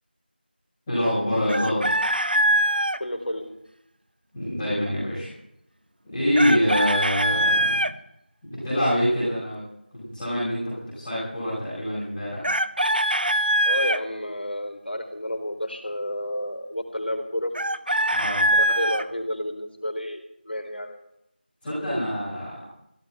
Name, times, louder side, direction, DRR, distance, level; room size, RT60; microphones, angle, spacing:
voice 1, 0.9-1.9 4.3-5.3 6.0-7.8 8.4-9.6 9.9-12.5 18.1-18.5 21.6-22.5, equal, 5° left, -22 dB, 7.0 m, -25 dB
Chicken rooster, 1.5-3.0 6.4-7.9 12.4-14.0 17.5-19.0, right 1 dB, 60° right, 1.0 m, -22 dB
voice 2, 3.0-3.5 13.6-17.5 18.5-21.0, left 1 dB, 70° left, 4 dB, 4.5 m, -31 dB
17.0 x 9.2 x 9.2 m, 0.78 s
figure-of-eight pair, 180°, 6 cm